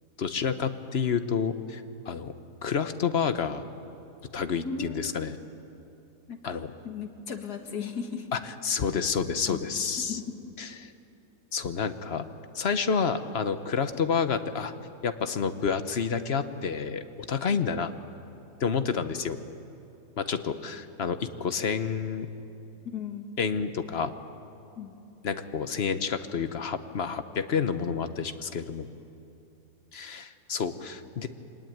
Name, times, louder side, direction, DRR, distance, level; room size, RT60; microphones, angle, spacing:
voice 1, 0.2-2.3 2.6-3.6 4.3-5.4 6.4-6.7 8.3-10.2 10.6-10.9 11.5-12.3 12.5-14.7 15.0-17.9 18.6-19.4 20.2-22.3 23.4-24.1 25.2-28.9 29.9-31.3, left 6 dB, 45° left, 10 dB, 1.0 m, -29 dB
voice 2, 4.6-5.1 6.3-6.6 6.8-8.3 9.5-9.6 10.1-10.3 22.8-23.3 24.8-25.0, left 6 dB, 70° left, 5 dB, 2.2 m, -36 dB
24.5 x 19.5 x 9.3 m, 2.7 s
omnidirectional pair, 1.8 m